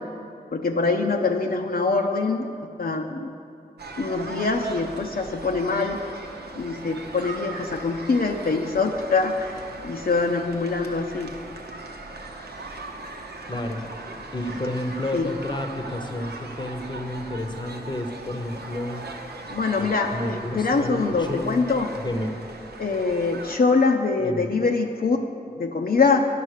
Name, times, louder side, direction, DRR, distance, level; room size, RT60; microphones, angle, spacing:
voice 1, 0.5-2.5 2.8-3.3 4.0-6.0 6.6-11.3 15.1-15.3 19.5-21.9 22.8-25.2 25.5-26.3, left 4 dB, 65° left, 2 dB, 0.6 m, -24 dB
sound 1, 3.8-23.6, right 3 dB, 85° right, 0.8 m, -39 dB
voice 2, 13.5-13.9 14.3-19.0 19.8-21.6 21.9-22.3 24.2-24.5, left 1 dB, 25° left, 5 dB, 0.8 m, -31 dB
9.3 x 5.4 x 6.5 m, 2.4 s
wide cardioid pair, 60°, 16 cm